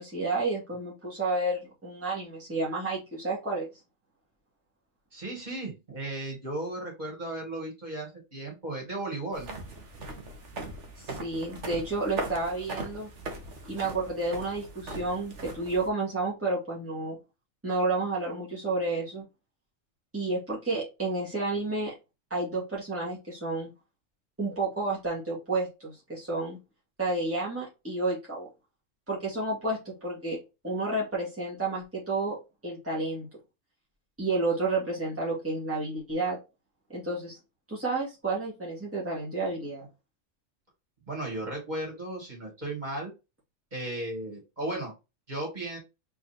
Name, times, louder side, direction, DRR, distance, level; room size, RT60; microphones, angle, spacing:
voice 1, 0.0-3.7 11.0-13.1 13.6-17.2 17.6-19.3 20.1-21.9 22.3-23.7 24.4-26.6 27.0-28.5 29.1-30.4 30.6-32.4 32.6-33.3 34.2-36.4 36.9-37.4 37.7-39.9, right 2 dB, 10° right, -6 dB, 2.2 m, -31 dB
voice 2, 5.1-9.6 41.1-43.1 43.7-44.9 45.3-45.8, right 2 dB, 35° right, -2 dB, 2.7 m, -35 dB
sound 1, 9.3-15.9, right 2 dB, 65° right, 1.6 m, -39 dB
4.4 x 4.1 x 2.9 m, 0.26 s
omnidirectional pair, 1.3 m